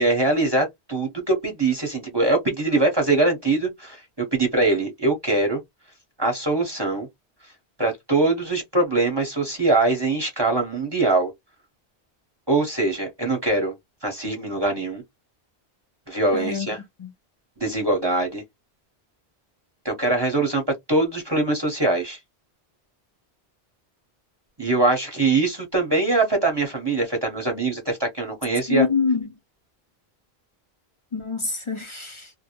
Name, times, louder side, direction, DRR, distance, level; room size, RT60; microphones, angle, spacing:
voice 1, 0.0-5.6 6.2-7.1 7.8-11.3 12.5-13.7 14.0-15.0 16.1-16.8 17.6-18.4 19.8-20.6 20.9-22.2 24.6-28.9, right 2 dB, 25° right, 0.8 m, -22 dB
voice 2, 16.3-16.7 17.0-17.1 28.7-29.3 31.1-32.3, left 4 dB, 45° left, 0.4 m, -25 dB
2.2 x 2.0 x 2.8 m
omnidirectional pair, 1.1 m